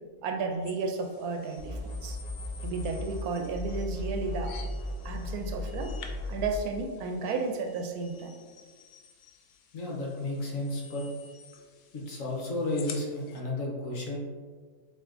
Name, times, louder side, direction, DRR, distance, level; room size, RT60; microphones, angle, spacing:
voice 1, 0.2-2.2 2.6-4.5 5.0-5.9 6.3-8.3, right 3 dB, 80° right, 3 dB, 1.1 m, -33 dB
sound 1, 0.6-13.4, left 6 dB, 85° left, 1.1 m, -51 dB
sound 2, 1.6-3.2 3.5-6.6, left 1 dB, 35° left, 0.7 m, -36 dB
voice 2, 9.7-11.0 11.9-14.2, left 2 dB, 65° left, -2 dB, 1.2 m, -32 dB
7.3 x 2.7 x 2.5 m, 1.5 s
omnidirectional pair, 1.6 m